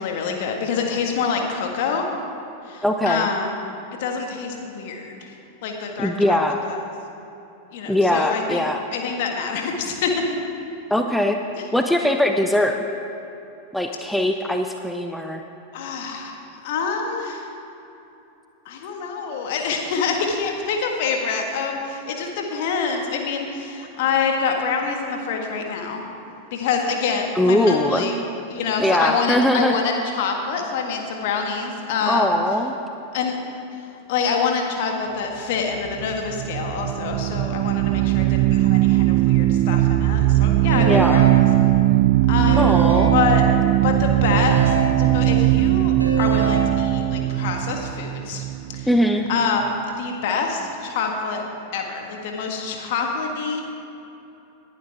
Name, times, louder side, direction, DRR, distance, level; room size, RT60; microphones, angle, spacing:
voice 1, 0.0-2.1 2.7-3.5 4.0-5.4 5.6-6.4 6.6-6.8 7.7-8.6 8.9-10.2 11.6-11.7 15.7-17.5 18.7-26.0 26.5-28.2 28.5-32.4 33.1-33.4 34.1-41.5 42.3-42.7 43.1-43.5 43.8-48.4 48.7-48.9 49.3-51.4 51.7-53.6, left 5 dB, 50° left, 2 dB, 1.7 m, -26 dB
voice 2, 2.8-3.3 6.0-6.6 7.9-8.8 10.9-11.4 11.7-12.8 13.7-15.4 27.4-28.0 28.8-29.7 32.1-32.7 40.7-41.3 42.6-43.1 48.9-49.3, left 1 dB, ahead, 4 dB, 0.6 m, -21 dB
sound 1, 35.8-49.1, right 15 dB, 45° right, 0.5 m, -19 dB
Keyboard (musical) / Ringtone, 40.7-42.0 42.5-43.8 44.2-45.6 46.0-47.3, right 1 dB, 85° right, 1.7 m, -28 dB
19.0 x 11.0 x 3.6 m, 2.9 s
figure-of-eight pair, 90°, 0 cm